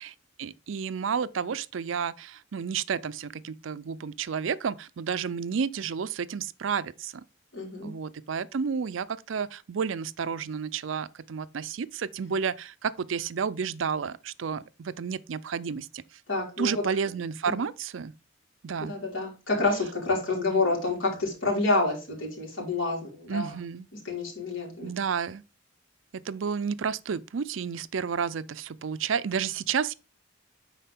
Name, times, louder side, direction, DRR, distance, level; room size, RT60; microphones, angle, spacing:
voice 1, 0.0-7.1 7.8-16.0 16.6-18.1 18.6-18.9 20.5-20.6 23.3-23.9 24.8-25.4 26.1-29.9, right 6 dB, 75° right, 0.5 m, -31 dB
voice 2, 7.5-7.9 16.3-16.8 17.5-17.6 18.8-23.5 24.1-24.9, left 3 dB, 80° left, 3.7 m, -28 dB
10.0 x 4.2 x 3.6 m
head